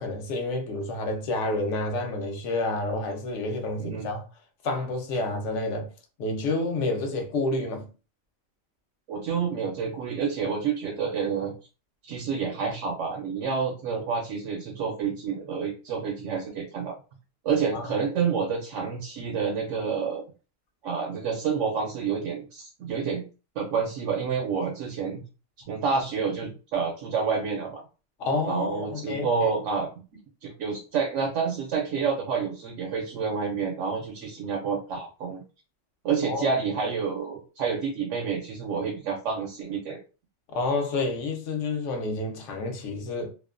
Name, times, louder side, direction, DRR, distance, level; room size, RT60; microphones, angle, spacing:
voice 1, 0.0-4.3 4.6-5.9 6.2-7.9 17.7-17.9 28.2-29.3 36.2-36.5 40.5-43.3, left 2 dB, 70° left, 0.9 m, -29 dB
voice 2, 3.8-4.1 9.1-11.5 12.0-16.9 17.4-20.2 20.8-23.2 23.6-25.2 25.7-27.8 28.5-29.9 30.4-35.4 36.0-40.0, right 5 dB, 70° right, 0.9 m, -28 dB
2.6 x 2.1 x 2.4 m
omnidirectional pair, 1.4 m